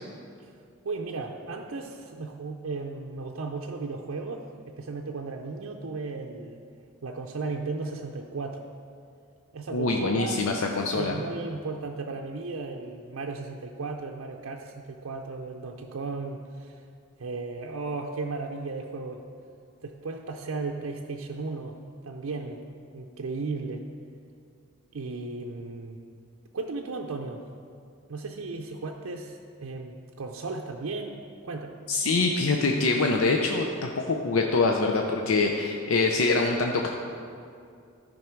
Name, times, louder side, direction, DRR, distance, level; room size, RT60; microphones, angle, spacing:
voice 1, 0.8-4.5 4.8-6.6 7.0-8.7 9.5-10.6 10.9-16.8 17.2-19.2 19.8-21.8 22.0-22.6 22.9-23.9 24.9-26.0 26.5-27.4 28.1-31.7, right 3 dB, 80° right, 1 dB, 0.5 m, -35 dB
voice 2, 9.7-11.2 31.9-36.9, left 3 dB, 85° left, 2 dB, 0.6 m, -24 dB
12.5 x 5.3 x 4.5 m, 2.4 s
head